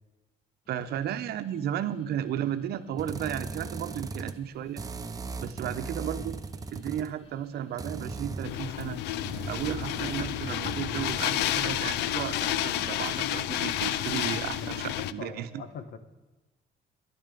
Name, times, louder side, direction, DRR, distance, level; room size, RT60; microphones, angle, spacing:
sound 1, 0.7-13.4, left 2 dB, 35° left, 3.6 m, -56 dB
voice 1, 0.7-4.8 5.4-6.4 6.7-9.0 9.4-15.6, right 10 dB, 70° right, 10 dB, 1.0 m, -34 dB
sound 2, 3.0-4.4 4.8-7.1 7.8-11.4, right 3 dB, 20° right, 0.8 m, -38 dB
sound 3, 8.4-15.1, left 12 dB, 85° left, 0.6 m, -30 dB
voice 2, 14.9-16.0, left 6 dB, 65° left, 11 dB, 1.5 m, -42 dB
12.0 x 11.5 x 6.8 m, 1.2 s
cardioid pair, 110°, 17 cm